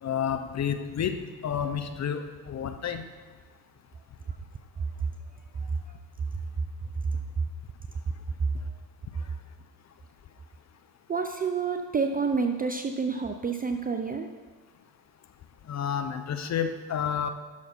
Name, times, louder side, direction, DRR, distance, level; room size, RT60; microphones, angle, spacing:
voice 1, 0.0-1.2 1.4-3.0 15.7-17.3, left 8 dB, 35° left, 8 dB, 0.9 m, -30 dB
voice 2, 11.1-14.3, right 5 dB, 20° right, 6 dB, 0.5 m, -28 dB
11.5 x 6.3 x 4.3 m, 1.4 s
hypercardioid pair, 75°, 50 cm